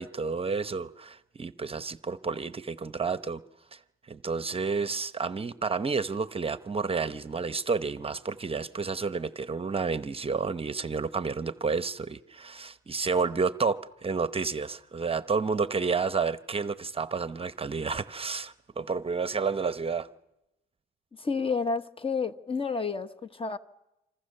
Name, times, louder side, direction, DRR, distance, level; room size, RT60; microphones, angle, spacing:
voice 1, 0.0-3.4 3.7-3.8 4.1-20.1, right 5 dB, 30° right, 0.9 m, -30 dB
voice 2, 21.2-23.6, left 4 dB, 25° left, 1.2 m, -30 dB
27.0 x 26.0 x 6.7 m
cardioid pair, 90°, 20 cm